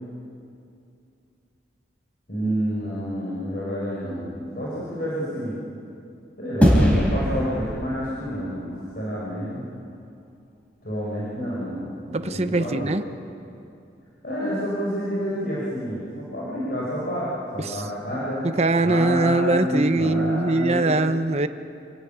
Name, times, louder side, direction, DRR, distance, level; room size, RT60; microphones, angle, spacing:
voice 1, 2.3-5.6 6.4-9.7 10.8-13.0 14.2-18.5 18.8-21.1, equal, 55° left, -7 dB, 5.7 m, -29 dB
sound 1, 6.6-9.2, equal, 10° left, 3.8 m, -22 dB
voice 2, 12.1-13.0 17.6-17.8 18.4-21.5, right 2 dB, 35° right, 10 dB, 0.9 m, -22 dB
27.5 x 16.5 x 9.3 m, 2.5 s
head